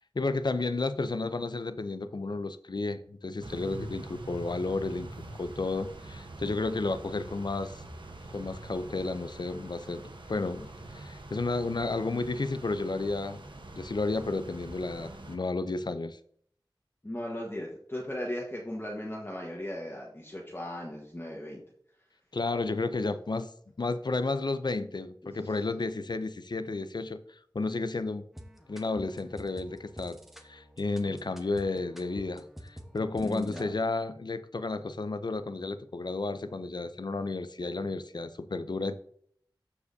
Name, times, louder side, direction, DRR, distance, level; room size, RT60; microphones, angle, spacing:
voice 1, 0.1-5.1 5.4-7.8 8.3-13.4 13.7-16.2 22.3-23.5 23.8-28.2 28.7-30.2 30.4-39.0, left 3 dB, 60° left, 0.5 m, -32 dB
sound 1, 3.4-15.4, right 2 dB, 75° right, 1.0 m, -45 dB
voice 2, 17.0-21.6 25.2-25.4 33.2-33.7, left 1 dB, 30° left, 1.3 m, -37 dB
sound 2, 28.3-33.7, equal, 5° right, 1.1 m, -49 dB
13.5 x 4.8 x 2.7 m
wide cardioid pair, 50°, 8 cm